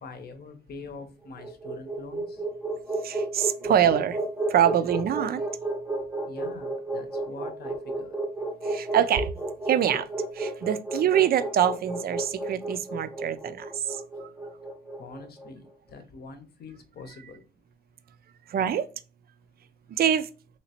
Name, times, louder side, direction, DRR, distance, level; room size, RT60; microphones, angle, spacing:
voice 1, 0.0-2.4 6.3-8.2 15.0-17.4, left 4 dB, 50° left, 0.8 m, -44 dB
sound 1, 1.2-15.5, right 2 dB, 10° right, 0.6 m, -32 dB
voice 2, 3.0-4.2 4.5-5.4 8.6-9.3 9.7-10.1 10.3-14.3 18.5-18.9 19.9-20.3, right 10 dB, 50° right, 0.4 m, -25 dB
3.1 x 2.9 x 2.8 m
cardioid pair, 90°, 20 cm